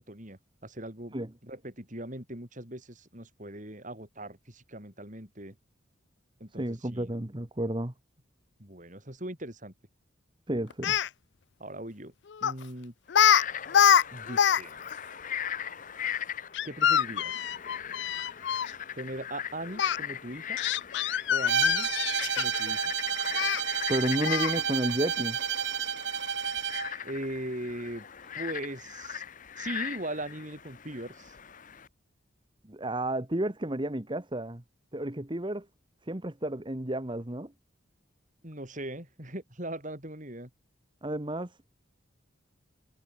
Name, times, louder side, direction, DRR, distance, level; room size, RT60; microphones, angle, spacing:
voice 1, 0.0-1.1 1.4-5.5 6.4-7.1 8.6-9.7 11.6-12.1 12.4-12.9 14.1-14.9 16.6-17.5 18.9-20.6 21.3-21.9 22.4-22.9 27.0-28.0 28.4-29.2 29.6-31.4 38.4-40.5, right 1 dB, 40° right, 5.1 m, -40 dB
voice 2, 6.6-7.9 10.5-11.0 23.9-25.4 32.7-34.6 34.9-35.7 36.0-37.5 41.0-41.6, right 1 dB, 25° right, 1.3 m, -31 dB
Speech, 10.7-11.1 12.4-12.6 13.1-13.4 13.7-14.6 14.9-15.0 16.5-18.7 19.8-20.0 20.6-22.7 23.3-23.6 24.2-24.6, left 8 dB, 60° left, 0.4 m, -24 dB
Frog, 13.1-31.9, left 9 dB, 40° left, 1.0 m, -40 dB
Bowed string instrument, 21.5-26.9, right 7 dB, 60° right, 2.6 m, -30 dB
head